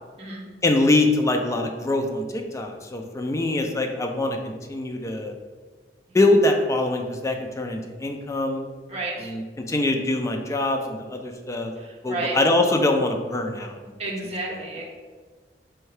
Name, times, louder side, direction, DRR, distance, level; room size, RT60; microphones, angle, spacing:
voice 1, 0.6-5.3 6.1-8.6 9.2-9.4 9.7-11.7 12.0-13.8, left 2 dB, 20° left, 3 dB, 0.3 m, -23 dB
voice 2, 8.9-9.4 11.7-12.4 14.0-14.8, right 2 dB, 40° right, -3 dB, 0.8 m, -31 dB
4.4 x 2.7 x 3.2 m, 1.4 s
head